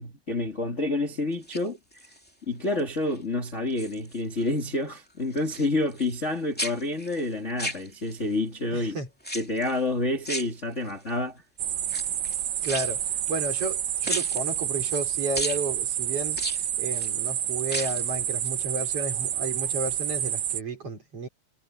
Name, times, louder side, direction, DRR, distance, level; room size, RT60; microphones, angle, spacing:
voice 1, 0.0-1.8 2.5-9.0 9.3-11.4, left 2 dB, 20° left, 2.0 m, -28 dB
sound 1, 1.3-2.3 2.8-3.2 3.5-4.5 4.8-6.3 6.6-8.3 9.2-9.8 10.2-11.1 11.8-13.8 14.0-15.0 15.3-15.6 16.3-17.1 17.6-18.1 18.4-18.5, equal, 5° left, 1.3 m, -36 dB
voice 2, 8.7-9.1 12.6-13.0 13.3-16.4 16.8-21.3, right 2 dB, 35° right, 4.8 m, -32 dB
sound 2, 11.6-20.6, right 10 dB, 80° right, 1.6 m, -29 dB
omnidirectional pair, 5.1 m